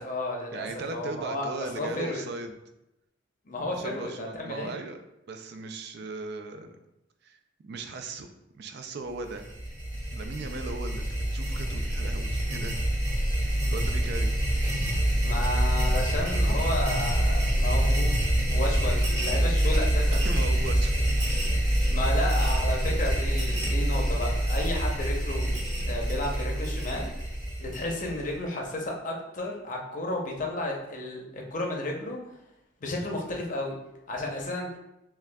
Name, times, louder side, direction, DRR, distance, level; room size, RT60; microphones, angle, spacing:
voice 1, 0.0-0.7 0.9-2.2 3.5-4.7 15.2-18.2 18.5-20.3 20.6-20.7 21.9-27.1 27.6-32.2 32.8-33.8 34.1-34.8, left 1 dB, 40° left, 0 dB, 0.6 m, -32 dB
voice 2, 0.5-2.5 3.7-5.0 5.3-6.8 7.2-8.3 8.5-9.4 10.1-11.0 11.3-12.8 13.6-14.3 20.1-21.0 23.5-23.8, right 3 dB, 55° right, 7 dB, 0.4 m, -38 dB
sound 1, 9.3-28.3, right 1 dB, 20° right, 1.0 m, -26 dB
5.9 x 2.3 x 2.2 m, 0.89 s
head